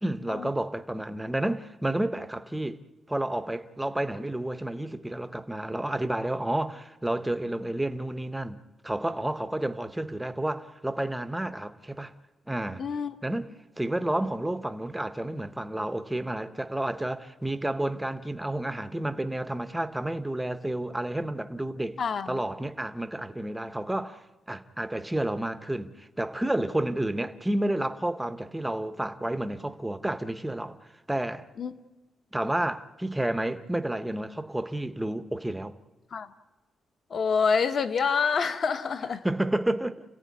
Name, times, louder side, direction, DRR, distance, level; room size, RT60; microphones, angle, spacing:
voice 1, 0.0-2.8 3.1-8.6 8.8-12.1 12.5-12.8 13.2-13.5 13.8-22.0 22.3-30.8 31.1-31.5 32.3-35.8 39.2-40.0, right 1 dB, 5° right, 0.7 m, -30 dB
voice 2, 12.8-13.2 22.0-22.4 31.6-31.7 36.1-36.3 37.1-39.2, left 5 dB, 45° left, 1.1 m, -27 dB
29.0 x 15.5 x 9.5 m
wide cardioid pair, 175°, 0 cm